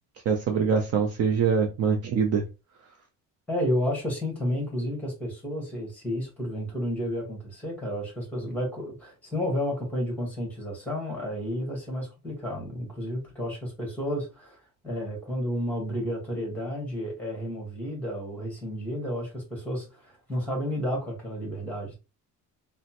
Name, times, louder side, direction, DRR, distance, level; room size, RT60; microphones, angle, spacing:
voice 1, 0.3-2.4, right 6 dB, 45° right, 4 dB, 0.4 m, -24 dB
voice 2, 3.5-14.6 14.8-22.0, equal, 5° left, 0 dB, 1.2 m, -31 dB
3.1 x 2.1 x 2.8 m, 0.28 s
cardioid pair, 160°, 35 cm